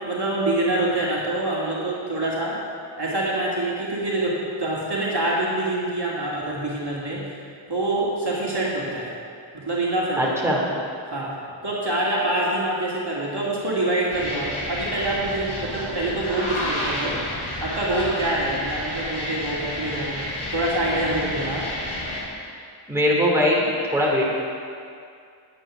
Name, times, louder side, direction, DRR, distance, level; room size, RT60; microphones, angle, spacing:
voice 1, 0.0-2.6 3.0-7.3 7.7-9.1 9.5-10.3 11.1-11.3 11.6-17.2 17.6-20.2 20.5-21.6, right 1 dB, 55° right, -6 dB, 2.4 m, -25 dB
voice 2, 10.2-10.6 22.9-24.2, equal, 5° right, -5 dB, 3.0 m, -21 dB
sound 1, 14.1-22.3, left 1 dB, 85° left, 2.3 m, -30 dB
10.0 x 9.3 x 6.3 m, 2.4 s
wide cardioid pair, 60°, 48 cm